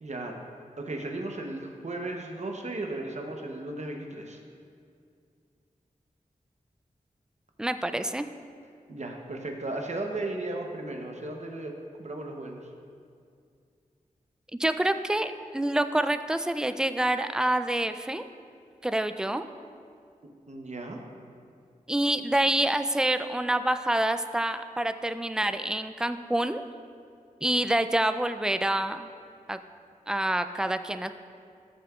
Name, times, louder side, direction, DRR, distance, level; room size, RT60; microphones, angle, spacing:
voice 1, 0.0-0.4 0.8-4.4 8.9-12.7 20.5-21.0, right 2 dB, 55° right, 2 dB, 0.8 m, -35 dB
voice 2, 7.6-8.3 14.6-18.2 18.8-19.4 21.9-26.6 27.4-29.1 29.5-29.6 30.1-31.1, right 1 dB, 5° right, 10 dB, 0.3 m, -27 dB
13.5 x 6.6 x 2.4 m, 2.3 s
wide cardioid pair, 70°, 14 cm